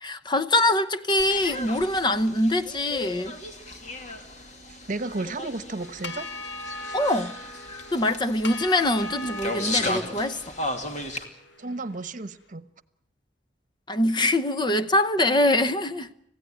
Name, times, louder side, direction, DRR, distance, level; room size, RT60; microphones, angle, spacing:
voice 1, 0.0-3.3 6.9-7.3 7.9-10.4 13.9-16.1, left 1 dB, 25° left, 0.8 m, -23 dB
sound 1, 1.2-11.2, left 2 dB, 40° left, 2.7 m, -35 dB
voice 2, 4.7-6.3 11.6-12.7, right 2 dB, 45° right, 1.1 m, -33 dB
sound 2, 5.8-12.2, left 2 dB, 85° left, 2.0 m, -39 dB
26.0 x 16.5 x 9.2 m
head